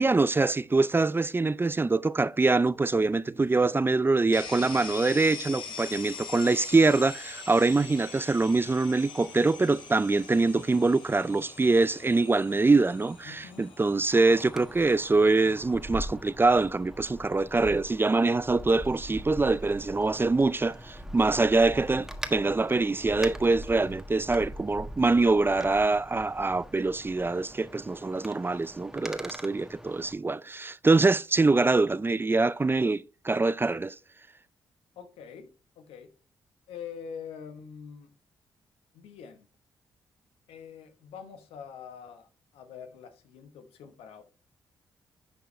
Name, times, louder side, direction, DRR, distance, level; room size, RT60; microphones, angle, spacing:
voice 1, 0.0-33.9, right 3 dB, 25° right, 0.4 m, -24 dB
voice 2, 3.4-3.8 13.2-13.6 35.0-35.5 35.8-36.1 36.7-38.1 38.9-39.5 40.5-44.2, left 7 dB, 85° left, 1.2 m, -45 dB
sound 1, 4.3-18.0, left 5 dB, 65° left, 2.4 m, -44 dB
Wind, 14.1-30.1, equal, 5° right, 1.5 m, -42 dB
10.5 x 4.6 x 3.1 m
supercardioid pair, 50°, 10 cm